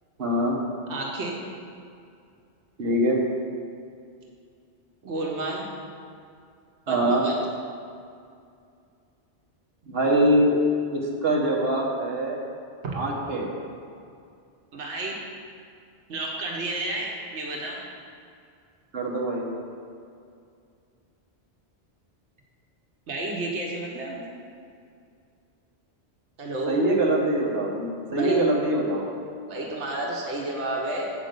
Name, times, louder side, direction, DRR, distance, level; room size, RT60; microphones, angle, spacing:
voice 1, 0.2-0.6 2.8-3.2 6.9-7.3 9.9-10.5 10.9-12.4 12.9-13.5 18.9-19.5 26.7-29.1, right 1 dB, 60° right, -2 dB, 1.4 m, -23 dB
voice 2, 0.9-1.4 5.0-5.6 6.9-7.3 12.8-12.9 14.7-15.2 16.1-17.8 23.1-24.2 26.4-26.8 28.1-28.4 29.5-31.1, right 2 dB, 90° right, -1 dB, 1.4 m, -31 dB
8.2 x 5.2 x 6.6 m, 2.4 s
omnidirectional pair, 1.1 m